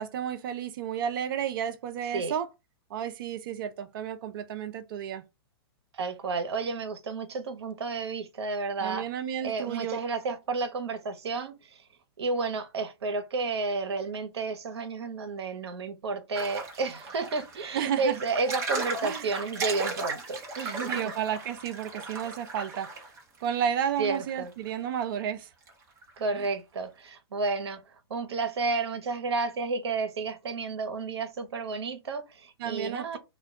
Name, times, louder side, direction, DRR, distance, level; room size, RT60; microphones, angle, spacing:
voice 1, 0.0-2.5 2.9-5.2 8.8-10.0 17.7-18.2 19.0-19.3 20.9-22.9 23.4-25.5 26.3-26.5 32.6-33.2, right 9 dB, 55° right, 0.4 m, -32 dB
voice 2, 6.0-9.0 9.4-11.8 12.2-21.1 24.0-24.5 26.2-27.8 28.1-33.2, right 4 dB, 90° right, 0.7 m, -31 dB
sound 1, 16.3-23.2 23.5-23.6 23.9-24.9 25.2-25.3 25.7-25.8 26.0-26.2, right 3 dB, 20° right, 0.7 m, -36 dB
2.1 x 2.1 x 3.5 m
hypercardioid pair, 140°, 13 cm